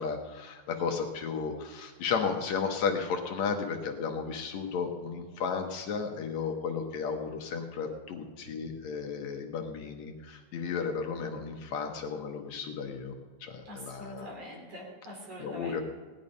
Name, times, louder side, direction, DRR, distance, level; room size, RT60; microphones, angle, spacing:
voice 1, 0.0-13.1 13.4-14.3 15.4-15.8, left 5 dB, 70° left, 3 dB, 2.2 m, -34 dB
voice 2, 13.6-15.8, equal, 50° right, -2 dB, 4.6 m, -44 dB
18.0 x 10.5 x 5.4 m, 1.4 s
omnidirectional pair, 3.6 m